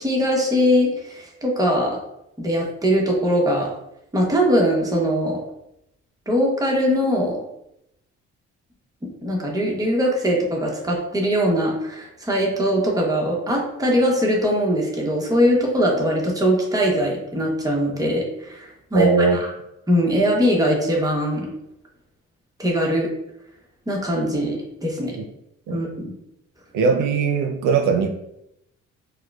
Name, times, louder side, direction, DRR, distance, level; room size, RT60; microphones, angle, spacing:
voice 1, 0.0-2.0 2.4-3.7 4.1-5.4 6.3-7.4 9.2-19.1 19.3-19.5 19.9-21.5 22.6-23.1 23.9-25.2 25.7-26.1, equal, 10° right, -1 dB, 0.8 m, -21 dB
voice 2, 18.9-19.4 25.2-25.3 25.7-25.8 26.7-28.1, right 5 dB, 80° right, 5 dB, 0.5 m, -19 dB
4.5 x 2.1 x 2.3 m, 0.82 s
cardioid pair, 90°, 30 cm